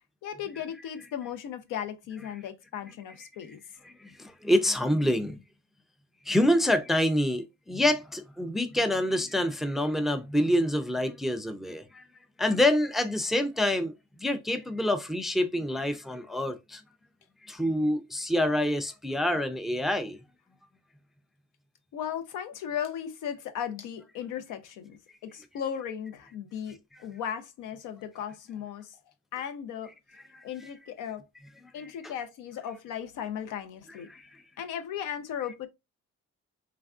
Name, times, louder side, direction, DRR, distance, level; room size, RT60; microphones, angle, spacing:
voice 1, 0.2-3.6 21.9-25.0 25.2-29.0 29.3-29.9 30.4-31.2 31.7-34.1 34.6-35.7, left 9 dB, 85° left, 0.6 m, -36 dB
voice 2, 3.9-5.4 6.3-12.0 12.4-16.8 17.5-20.2 30.3-30.4 31.8-32.1 34.1-34.2, left 1 dB, ahead, 0.3 m, -27 dB
3.4 x 2.3 x 2.3 m
cardioid pair, 90°, 30 cm